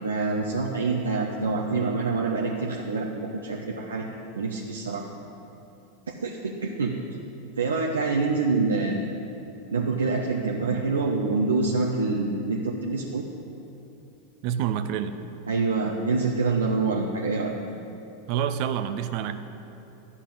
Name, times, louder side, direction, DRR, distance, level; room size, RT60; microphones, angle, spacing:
voice 1, 0.0-4.1 4.4-5.1 6.2-7.0 7.6-9.0 9.7-13.2 15.5-17.5, right 3 dB, 85° right, -1 dB, 0.9 m, -26 dB
voice 2, 14.4-15.2 18.3-19.3, right 9 dB, 55° right, 10 dB, 0.8 m, -27 dB
12.0 x 5.8 x 8.5 m, 2.9 s
hypercardioid pair, 95°, 0 cm